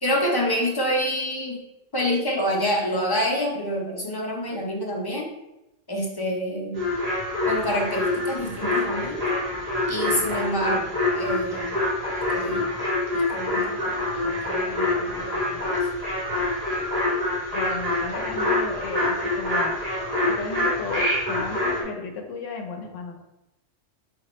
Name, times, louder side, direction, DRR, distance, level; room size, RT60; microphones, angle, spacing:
voice 1, 0.0-1.6 1.9-5.3 5.9-6.8 7.5-9.2 9.9-11.8 12.3-12.7 13.1-15.7, equal, 25° left, -2 dB, 0.6 m, -27 dB
sound 1, 6.8-21.8, left 2 dB, 30° right, 1.2 m, -26 dB
voice 2, 17.5-19.7 20.2-23.2, left 5 dB, 70° left, 3 dB, 1.0 m, -34 dB
5.0 x 2.8 x 3.1 m, 0.90 s
omnidirectional pair, 1.3 m